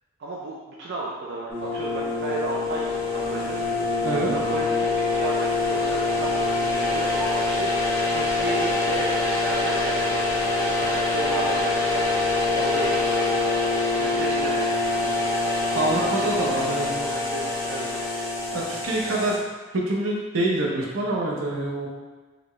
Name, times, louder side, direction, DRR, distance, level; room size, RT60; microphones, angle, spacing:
voice 1, 0.2-4.0 4.3-10.2 10.8-12.1 12.5-13.3 14.0-15.2 15.9-17.9, right 2 dB, 55° right, -4 dB, 0.4 m, -33 dB
sound 1, 1.5-19.4, left 3 dB, 25° left, 1.0 m, -25 dB
voice 2, 4.0-4.4 15.7-16.9 18.5-19.3 19.7-21.9, right 2 dB, 85° right, -2 dB, 0.7 m, -25 dB
3.9 x 2.3 x 3.1 m, 1.3 s
head